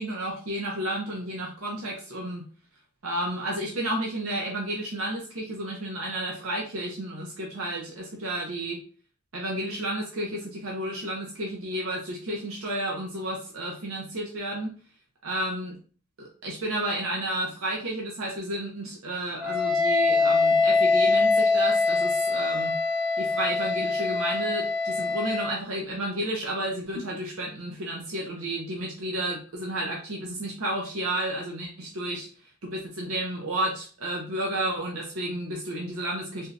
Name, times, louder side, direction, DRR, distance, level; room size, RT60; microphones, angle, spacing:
voice 1, 0.0-2.4 3.0-8.8 9.3-14.7 15.2-15.7 16.2-22.8 23.2-32.3 32.6-36.5, right 1 dB, 80° right, -2 dB, 0.8 m, -32 dB
Wind instrument woodwind instrument, 19.4-25.6, left 3 dB, 5° right, 0.5 m, -23 dB
3.4 x 2.7 x 2.5 m, 0.39 s
head